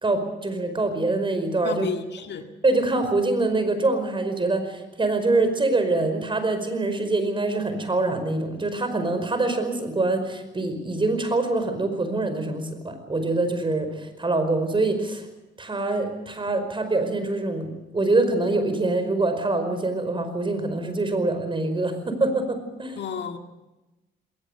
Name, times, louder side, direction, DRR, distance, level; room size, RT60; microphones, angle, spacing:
voice 1, 0.0-1.9 2.6-15.2 15.6-23.0, right 2 dB, 25° right, 8 dB, 5.1 m, -24 dB
voice 2, 1.6-2.5 23.0-23.4, left 6 dB, 60° left, 5 dB, 2.0 m, -31 dB
20.5 x 19.0 x 8.1 m, 1.0 s
cardioid pair, 90°, 20 cm